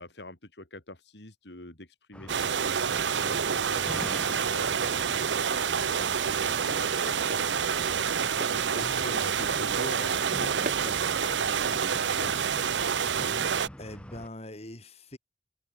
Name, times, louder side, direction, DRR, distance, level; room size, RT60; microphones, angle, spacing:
voice 1, 0.0-13.1, left 1 dB, 70° left, 4.9 m, -45 dB
sound 1, 2.1-14.3, equal, 5° left, 1.7 m, -44 dB
sound 2, 2.3-13.7, right 7 dB, 85° right, 0.7 m, -28 dB
Walk footsteps, 4.4-13.1, right 2 dB, 45° right, 7.1 m, -44 dB
voice 2, 8.8-9.4 13.8-15.2, left 1 dB, 35° left, 4.4 m, -43 dB
head